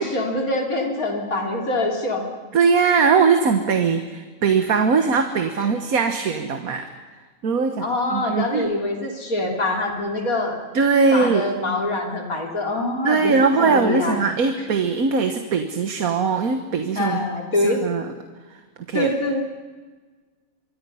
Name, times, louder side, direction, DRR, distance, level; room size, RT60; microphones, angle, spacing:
voice 1, 0.0-2.2 5.6-5.7 7.8-10.6 11.1-14.2 16.9-17.8 18.9-19.4, left 2 dB, 80° left, 1 dB, 3.9 m, -24 dB
voice 2, 2.5-6.9 7.4-8.6 10.7-11.5 13.0-17.2 17.6-18.1 18.9-19.1, right 5 dB, 90° right, 6 dB, 1.7 m, -20 dB
26.5 x 23.0 x 5.6 m, 1.4 s
omnidirectional pair, 1.5 m